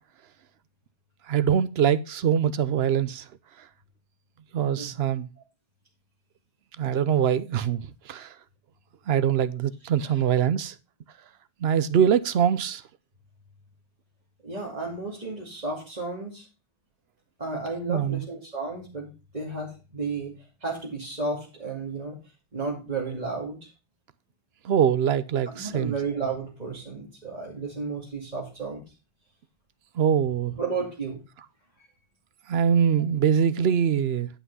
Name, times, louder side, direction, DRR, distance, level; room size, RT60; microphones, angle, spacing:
voice 1, 1.3-3.2 4.5-5.3 6.8-8.3 9.1-10.7 11.6-12.8 17.9-18.2 24.6-25.9 30.0-30.6 32.5-34.3, right 8 dB, 85° right, 0.9 m, -23 dB
voice 2, 14.4-16.4 17.4-20.3 20.6-22.2 22.5-23.7 25.5-28.8 30.6-31.2, right 4 dB, 40° right, 2.6 m, -33 dB
10.5 x 5.8 x 5.4 m
omnidirectional pair, 1.0 m